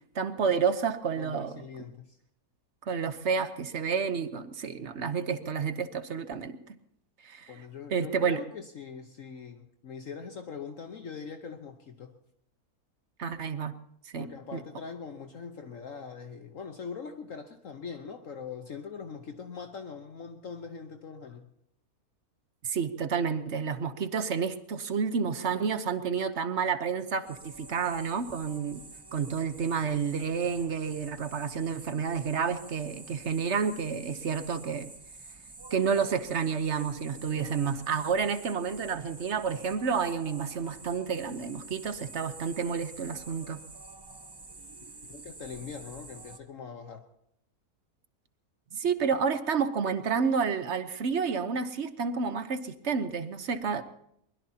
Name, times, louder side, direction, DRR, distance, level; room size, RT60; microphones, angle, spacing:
voice 1, 0.1-1.6 2.9-6.6 7.2-7.5 7.9-8.4 13.2-13.7 14.0-14.6 22.6-28.8 29.1-34.9 35.7-43.6 48.7-53.8, right 6 dB, 50° right, 11 dB, 1.1 m, -30 dB
voice 2, 1.2-2.2 7.5-12.1 14.2-21.5 45.1-47.0, left 6 dB, 60° left, 6 dB, 1.3 m, -42 dB
sound 1, 27.2-46.4, right 3 dB, 20° right, 0.7 m, -48 dB
23.0 x 21.0 x 2.8 m, 0.76 s
omnidirectional pair, 1.7 m